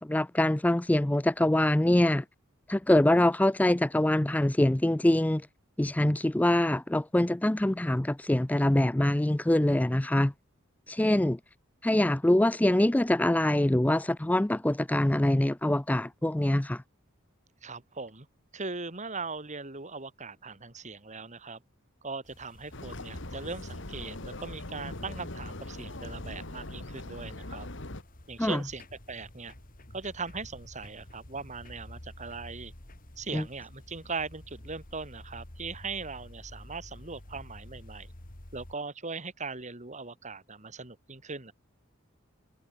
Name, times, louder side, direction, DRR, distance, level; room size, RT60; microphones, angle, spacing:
voice 1, 0.0-2.2 2.7-5.5 5.8-10.3 10.9-11.4 11.8-16.8 28.4-28.6 33.3-33.4, left 1 dB, 10° left, 0.4 m, -24 dB
voice 2, 17.6-18.3 18.5-21.6 22.0-27.7 28.3-29.5 29.9-32.7 33.2-38.1 38.5-41.5, right 4 dB, 35° right, 3.0 m, -39 dB
sound 1, 22.2-38.8, left 1 dB, 45° left, 2.7 m, -49 dB
sound 2, 22.7-28.0, left 2 dB, 65° left, 2.7 m, -41 dB
head